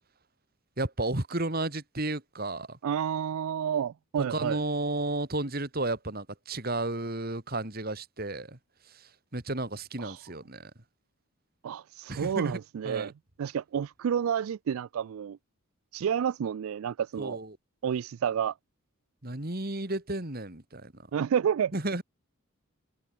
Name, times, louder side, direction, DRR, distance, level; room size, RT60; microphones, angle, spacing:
voice 1, 0.8-2.8 4.3-8.6 8.8-10.7 12.1-12.6 12.8-13.1 17.2-17.6 19.2-21.1 21.7-22.0, right 2 dB, 45° right, 2.4 m, -33 dB
voice 2, 2.8-4.6 10.0-10.2 11.6-13.1 13.4-15.4 15.9-17.4 17.8-18.5 21.1-21.7, right 8 dB, 75° right, 0.3 m, -30 dB
head